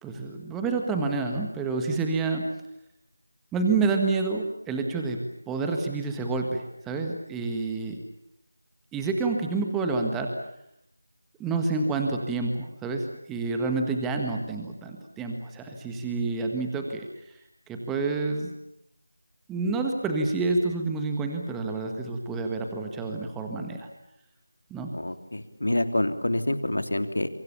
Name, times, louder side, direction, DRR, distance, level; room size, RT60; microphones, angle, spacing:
voice 1, 0.0-2.4 3.5-5.2 5.5-8.0 8.9-10.3 11.4-17.1 17.7-18.5 19.5-23.9 24.7-24.9, right 3 dB, 5° right, 3 dB, 1.7 m, -28 dB
voice 2, 24.9-27.3, left 1 dB, 75° left, 9 dB, 3.2 m, -27 dB
29.0 x 24.5 x 7.1 m, 0.77 s
figure-of-eight pair, 165°, 0 cm